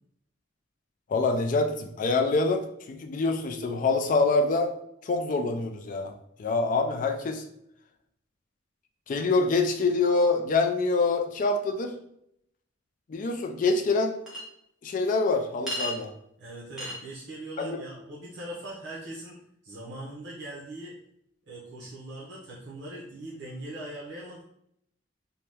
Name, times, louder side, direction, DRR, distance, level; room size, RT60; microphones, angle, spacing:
voice 1, 1.1-4.7 5.0-6.1 6.4-7.4 9.1-11.9 13.1-14.2 14.8-16.1 17.6-17.8, left 3 dB, 40° left, 5 dB, 0.3 m, -25 dB
Chink clink, 14.3-14.4 15.7-16.0 16.8-17.0, left 1 dB, 5° right, 0.8 m, -32 dB
voice 2, 16.4-19.4 19.6-21.0 21.5-24.4, right 1 dB, 60° right, -6 dB, 0.7 m, -40 dB
2.7 x 2.1 x 3.3 m, 0.75 s
head